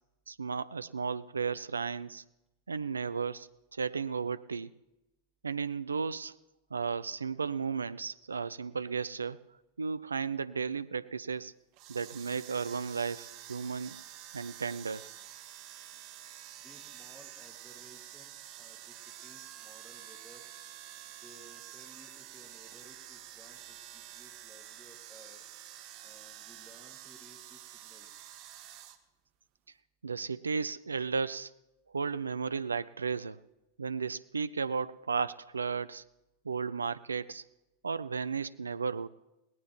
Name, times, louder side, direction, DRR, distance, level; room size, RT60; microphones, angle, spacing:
voice 1, 0.3-2.2 2.7-4.8 5.4-6.3 6.7-9.4 9.8-11.5 11.9-14.0 14.3-15.1 30.0-31.5 31.9-33.4 33.8-36.0 36.4-37.4 37.8-39.1, right 5 dB, 75° right, 16 dB, 0.4 m, -34 dB
sound 1, 11.7-29.0, right 12 dB, 45° right, 1.0 m, -49 dB
voice 2, 16.6-20.5 21.2-25.4 26.0-28.3, right 1 dB, ahead, 0 dB, 2.0 m, -58 dB
20.5 x 17.5 x 3.0 m, 0.97 s
figure-of-eight pair, 90°, 0 cm